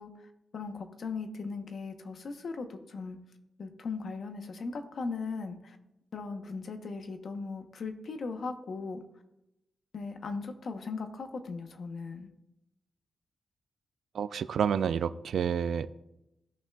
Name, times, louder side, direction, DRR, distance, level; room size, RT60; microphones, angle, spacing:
voice 1, 0.0-3.2 3.6-5.8 6.1-9.0 9.9-12.3, left 4 dB, 55° left, 6 dB, 0.9 m, -38 dB
voice 2, 14.1-15.9, right 7 dB, 75° right, 13 dB, 0.4 m, -29 dB
17.0 x 5.8 x 2.3 m, 0.89 s
wide cardioid pair, 140°, 0 cm